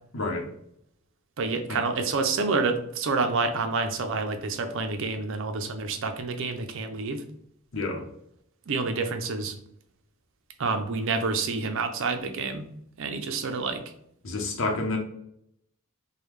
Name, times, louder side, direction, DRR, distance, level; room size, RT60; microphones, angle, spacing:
voice 1, 0.1-0.5 1.7-1.8 7.7-8.0 14.2-15.0, left 2 dB, 65° left, 3 dB, 0.9 m, -29 dB
voice 2, 1.4-7.2 8.7-9.5 10.6-12.7 13.0-13.8, right 4 dB, 65° right, 7 dB, 0.5 m, -28 dB
5.2 x 2.3 x 3.1 m, 0.72 s
head